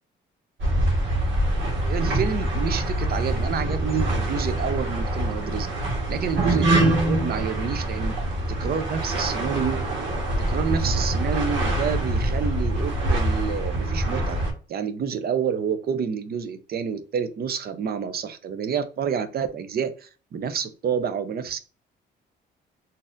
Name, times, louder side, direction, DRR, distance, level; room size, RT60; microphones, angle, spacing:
sound 1, 0.6-14.5, right 1 dB, 70° right, 1.4 m, -24 dB
voice 1, 1.9-5.7 6.1-8.2 8.5-9.9 10.4-14.4 14.7-21.6, right 7 dB, 50° right, 10 dB, 0.6 m, -28 dB
3.9 x 2.7 x 2.5 m, 0.35 s
cardioid pair, 90°, 20 cm